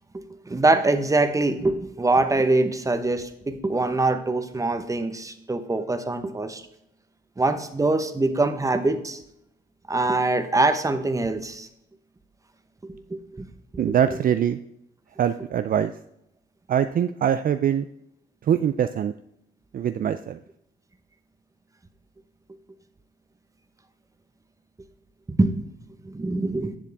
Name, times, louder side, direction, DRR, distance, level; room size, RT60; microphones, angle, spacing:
voice 1, 0.1-6.6 7.4-9.2 9.9-11.7 12.9-13.5 13.7-13.9 14.1-14.2 25.3-25.6 26.0-26.8, right 2 dB, 15° right, 9 dB, 1.1 m, -24 dB
voice 2, 13.8-14.6 15.2-15.9 16.7-17.9 18.5-19.1 19.7-20.4, right 9 dB, 45° right, 10 dB, 0.4 m, -23 dB
11.0 x 7.4 x 3.5 m, 0.78 s
cardioid pair, 90°, 20 cm